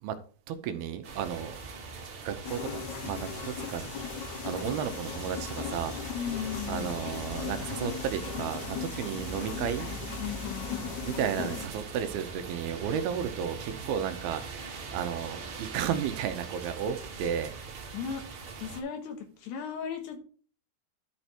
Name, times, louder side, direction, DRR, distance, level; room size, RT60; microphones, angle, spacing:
voice 1, 0.5-1.6 2.2-3.9 4.4-6.0 6.7-9.9 11.0-14.6 14.9-17.5, right 8 dB, 75° right, 8 dB, 2.6 m, -33 dB
sound 1, 1.0-18.8, right 4 dB, 50° right, 1.8 m, -41 dB
sound 2, 2.4-11.7, left 8 dB, 65° left, 2.0 m, -38 dB
voice 2, 6.1-6.9 10.2-11.0 17.9-18.2 18.6-20.2, left 7 dB, 85° left, 5 dB, 3.5 m, -36 dB
11.5 x 4.8 x 4.3 m, 0.41 s
omnidirectional pair, 4.7 m